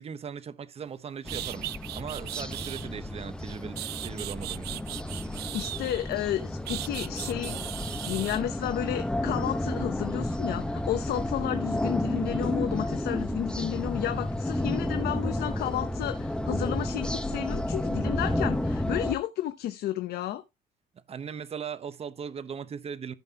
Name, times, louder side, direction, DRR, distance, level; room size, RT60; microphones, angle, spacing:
voice 1, 0.0-1.7 1.9-4.8 21.1-23.1, right 7 dB, 35° right, 1.0 m, -38 dB
sound 1, 0.9-1.0 1.3-2.9 3.5-6.1 6.7-8.4, right 17 dB, 75° right, 0.5 m, -38 dB
sound 2, 1.3-19.2, left 1 dB, 5° left, 1.0 m, -31 dB
voice 2, 5.5-7.6 8.0-20.4, left 12 dB, 70° left, 0.9 m, -32 dB
15.0 x 5.5 x 2.9 m
cardioid pair, 110°, 17 cm